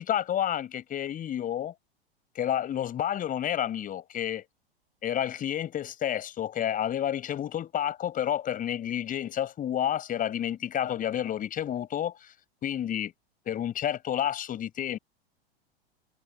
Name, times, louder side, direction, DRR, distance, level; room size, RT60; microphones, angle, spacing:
voice 1, 0.0-1.7 2.3-4.4 5.0-12.3 12.6-13.1 13.5-15.0, left 10 dB, 25° left, 6.2 m, -30 dB
figure-of-eight pair, 90°, 31 cm